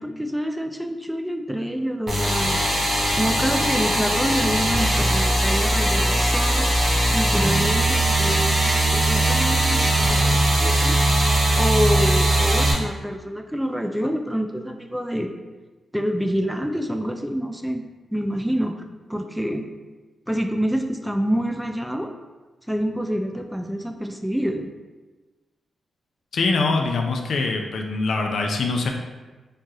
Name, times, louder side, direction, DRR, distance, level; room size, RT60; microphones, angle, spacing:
voice 1, 0.0-2.6 3.2-6.7 7.1-11.0 11.5-15.3 15.9-17.8 18.1-18.8 19.1-19.7 20.3-22.1 22.7-24.7, equal, 5° right, 5 dB, 0.3 m, -27 dB
sound 1, 2.1-12.7, right 1 dB, 45° right, 1.0 m, -20 dB
voice 2, 26.3-28.9, left 3 dB, 70° left, 2 dB, 0.3 m, -23 dB
3.2 x 2.2 x 2.6 m, 1.2 s
supercardioid pair, 40°, 0 cm